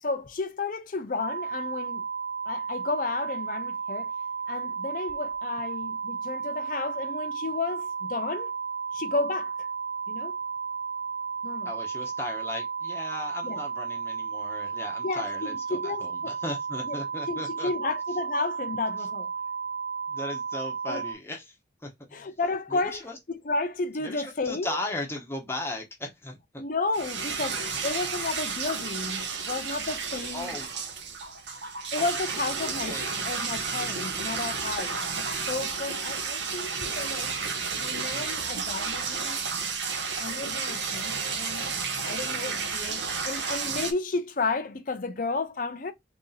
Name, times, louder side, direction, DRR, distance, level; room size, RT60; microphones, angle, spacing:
voice 1, 0.0-2.0 2.5-4.1 4.5-8.5 8.9-9.5 10.1-10.3 11.4-11.7 13.4-13.6 15.0-16.4 16.9-17.0 17.3-19.3 20.9-21.0 22.1-24.8 26.6-30.6 31.9-33.0 33.2-35.0 35.5-37.4 37.8-39.5 40.2-41.7 42.0-45.9, left 3 dB, 45° left, 0.5 m, -32 dB
sound 1, 1.2-21.1, right 6 dB, 45° right, 0.4 m, -33 dB
voice 2, 11.6-17.7 20.1-22.3 22.7-23.2 24.0-26.6 30.3-30.7 32.0-32.1 32.9-33.1, left 2 dB, 15° left, 0.7 m, -37 dB
sound 2, 26.9-43.9, right 5 dB, 70° right, 0.8 m, -32 dB
3.1 x 2.7 x 3.9 m
head